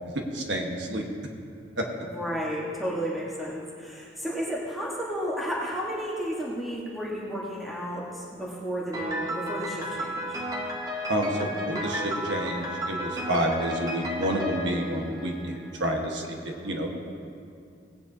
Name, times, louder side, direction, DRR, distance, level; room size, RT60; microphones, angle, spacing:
voice 1, 0.3-1.0 1.8-1.9 11.1-16.9, right 1 dB, 65° right, 1 dB, 1.3 m, -29 dB
voice 2, 2.0-10.4 16.6-16.9, equal, ahead, -6 dB, 1.3 m, -33 dB
Piano, 8.9-15.8, equal, 20° right, 0.9 m, -33 dB
18.0 x 9.3 x 2.8 m, 2.4 s
head